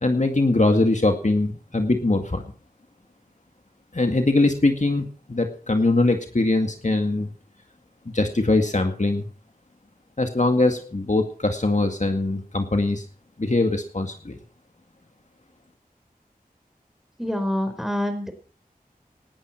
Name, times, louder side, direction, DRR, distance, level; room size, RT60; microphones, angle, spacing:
voice 1, 0.0-2.4 3.9-7.3 8.1-9.3 10.2-13.0 13.4-14.4, left 2 dB, 50° left, 5 dB, 2.2 m, -22 dB
voice 2, 17.2-18.3, left 1 dB, ahead, 8 dB, 4.7 m, -26 dB
19.0 x 11.5 x 4.5 m, 0.41 s
wide cardioid pair, 50°, 15 cm